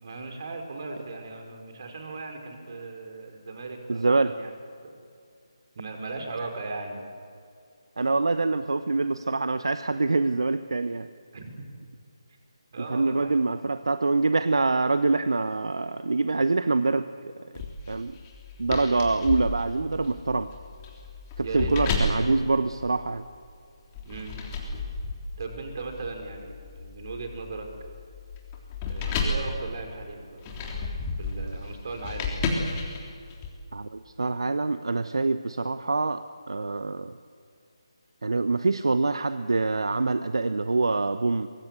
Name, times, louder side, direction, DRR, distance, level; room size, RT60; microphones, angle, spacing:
voice 1, 0.0-4.5 4.8-4.9 5.7-7.0 11.3-11.5 11.9-12.0 12.7-13.4 18.8-19.1 21.4-22.4 24.0-24.4 25.4-27.7 28.8-30.6 31.2-32.5, right 3 dB, 45° right, 4 dB, 4.9 m, -38 dB
voice 2, 3.9-4.3 8.0-11.1 12.9-17.1 17.9-18.2 18.6-20.5 21.4-23.3 33.7-37.1 38.2-41.5, right 3 dB, 65° right, 12 dB, 0.9 m, -25 dB
sound 1, 17.5-23.4 23.9-33.5, left 3 dB, 20° left, 3.5 m, -33 dB
24.0 x 23.0 x 8.2 m, 2.4 s
figure-of-eight pair, 150°, 3 cm